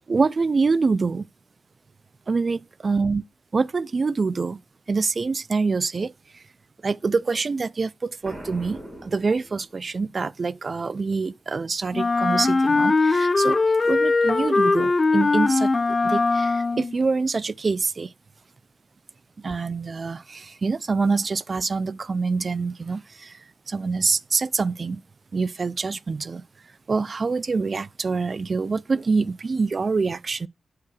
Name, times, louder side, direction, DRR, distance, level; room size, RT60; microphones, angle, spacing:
voice 1, 0.1-1.2 2.3-3.2 3.5-4.6 4.9-6.4 6.8-13.6 13.8-15.7 16.0-18.1 19.4-25.0 25.3-26.4 26.9-30.5, right 4 dB, 45° right, 0.4 m, -25 dB
Boom, 8.2-10.1, right 1 dB, 25° right, 5.1 m, -41 dB
Wind instrument woodwind instrument, 11.9-17.0, left 3 dB, 35° left, 0.5 m, -20 dB
9.3 x 4.7 x 4.8 m
cardioid pair, 70°, 0 cm